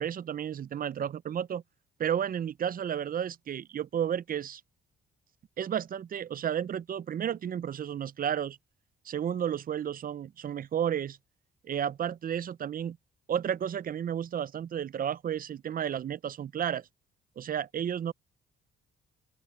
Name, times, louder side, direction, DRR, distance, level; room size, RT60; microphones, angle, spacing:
voice 1, 0.0-1.6 2.0-4.6 5.6-8.6 9.0-11.2 11.6-13.0 13.3-16.9 17.4-18.1, right 9 dB, 45° right, 0.6 m, -32 dB
open air
cardioid pair, 90°, 20 cm